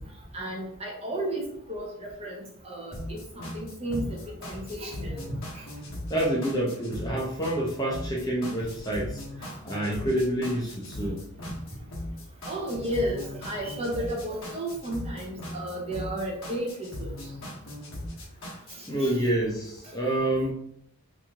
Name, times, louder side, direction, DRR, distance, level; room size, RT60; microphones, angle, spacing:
voice 1, 0.3-2.4 2.6-5.6 9.4-9.5 12.5-17.1 19.0-19.2, right 1 dB, 25° right, -1 dB, 0.7 m, -33 dB
sound 1, 2.9-18.9, left 1 dB, 60° left, 1.1 m, -39 dB
voice 2, 6.1-9.2 9.6-11.3 18.9-20.5, right 1 dB, 15° left, -3 dB, 0.6 m, -28 dB
3.0 x 2.7 x 3.5 m, 0.71 s
head